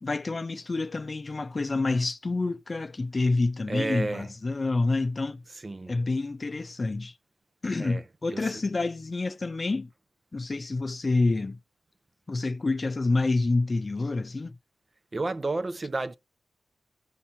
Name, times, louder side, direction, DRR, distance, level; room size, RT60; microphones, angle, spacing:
voice 1, 0.0-5.4 5.9-7.1 7.6-9.9 10.3-11.6 12.3-14.6, left 3 dB, 40° left, 0.5 m, -28 dB
voice 2, 3.7-4.3 5.5-6.0 7.8-8.6 15.1-16.2, right 2 dB, 40° right, 0.5 m, -32 dB
15.0 x 5.7 x 2.6 m
cardioid pair, 65°, 0 cm